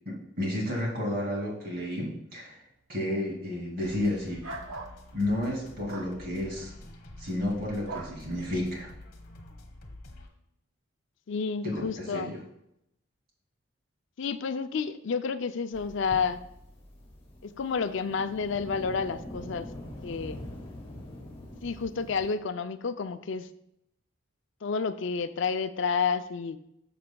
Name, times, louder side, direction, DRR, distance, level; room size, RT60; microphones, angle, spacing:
voice 1, 0.1-2.6 2.9-4.4 5.1-6.7 7.2-8.9 11.6-12.4, left 1 dB, 50° right, -2 dB, 2.6 m, -31 dB
sound 1, 3.8-10.3, left 1 dB, 45° left, 1.4 m, -47 dB
sound 2, 4.4-5.0 5.9-6.1 7.9-8.2, right 3 dB, 85° right, 0.8 m, -39 dB
voice 2, 11.3-12.4 14.2-16.4 17.4-19.7 20.0-20.4 21.6-23.5 24.6-26.6, left 5 dB, 60° left, 11 dB, 0.4 m, -30 dB
sound 3, 15.7-22.4, left 1 dB, 25° left, 1.9 m, -44 dB
12.5 x 6.9 x 2.3 m, 0.79 s
head